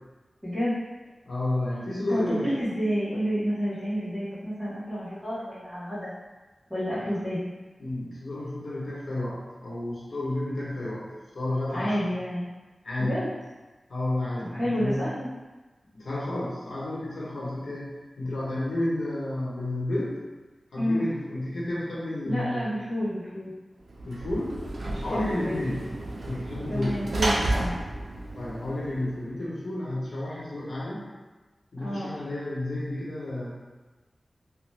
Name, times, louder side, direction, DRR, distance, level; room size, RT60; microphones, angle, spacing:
voice 1, 0.4-0.8 2.1-6.1 6.7-7.5 11.7-12.5 13.0-13.3 14.5-15.3 20.8-21.0 22.2-23.5 24.9-25.8 26.7-27.7 31.8-32.1, equal, 5° right, -15 dB, 1.0 m, -29 dB
voice 2, 1.2-2.5 7.1-7.2 7.8-11.1 11.3-12.1 12.8-13.2 13.9-15.1 15.9-17.9 18.2-20.2 20.7-22.7 24.0-24.6 25.0-25.9 26.2-27.0 28.3-31.0 31.7-33.5, left 1 dB, 85° left, -7 dB, 0.9 m, -31 dB
Sliding door / Slam, 23.9-29.3, right 1 dB, 75° right, 0.4 m, -32 dB
2.9 x 2.1 x 3.3 m, 1.2 s
wide cardioid pair, 75°, 0 cm